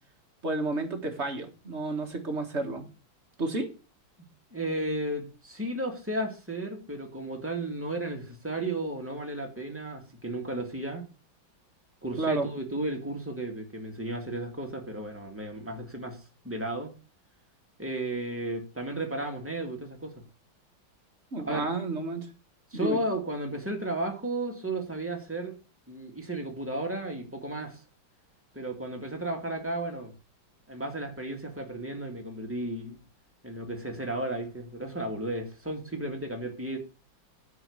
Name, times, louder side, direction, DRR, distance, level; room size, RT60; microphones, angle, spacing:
voice 1, 0.4-2.8 3.4-3.7 12.2-12.5 21.3-22.3 22.7-23.0, right 2 dB, 35° right, 1.8 m, -31 dB
voice 2, 4.5-11.1 12.0-16.9 17.8-20.1 21.4-21.7 22.7-25.6 25.9-27.8 28.5-30.1 30.7-33.0 33.4-36.8, right 1 dB, 5° right, 2.0 m, -34 dB
9.8 x 4.6 x 7.8 m
omnidirectional pair, 2.1 m